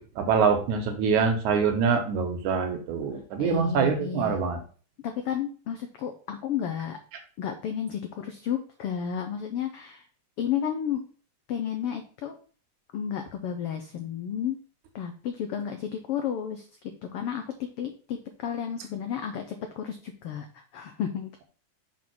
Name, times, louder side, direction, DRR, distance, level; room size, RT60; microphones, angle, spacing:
voice 1, 0.0-4.6, right 5 dB, 75° right, 5 dB, 2.5 m, -25 dB
voice 2, 3.4-4.4 5.0-7.0 7.4-10.0 10.4-11.0 11.5-12.4 12.9-14.6 14.9-16.7 17.1-21.4, left 8 dB, 85° left, 6 dB, 1.3 m, -32 dB
6.4 x 3.6 x 6.0 m, 0.40 s
omnidirectional pair, 3.5 m